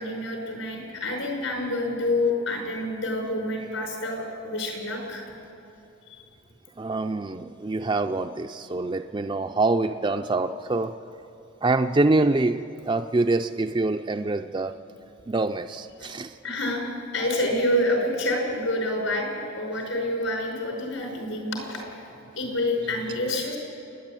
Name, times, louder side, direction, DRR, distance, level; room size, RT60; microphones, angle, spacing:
voice 1, 0.0-5.2 16.4-21.8 22.4-23.6, left 1 dB, 75° left, 1 dB, 5.6 m, -27 dB
voice 2, 6.8-10.9 11.6-14.7 15.3-16.4, right 2 dB, 20° right, 6 dB, 0.4 m, -25 dB
28.5 x 10.5 x 9.0 m, 3.0 s
head